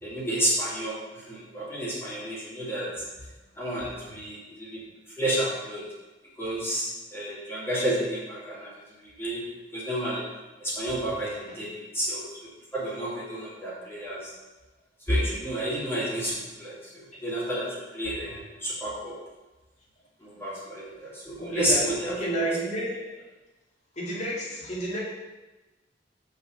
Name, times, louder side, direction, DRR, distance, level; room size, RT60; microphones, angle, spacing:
voice 1, 0.0-2.9 3.6-4.8 5.2-5.8 6.4-8.7 9.0-9.4 9.7-10.2 10.6-12.2 12.7-14.3 15.1-19.2 20.2-22.4, right 1 dB, 15° left, -8 dB, 2.6 m, -30 dB
voice 2, 21.4-23.2 24.0-25.0, right 1 dB, 40° left, -5 dB, 2.3 m, -31 dB
5.9 x 5.5 x 6.5 m, 1.2 s
head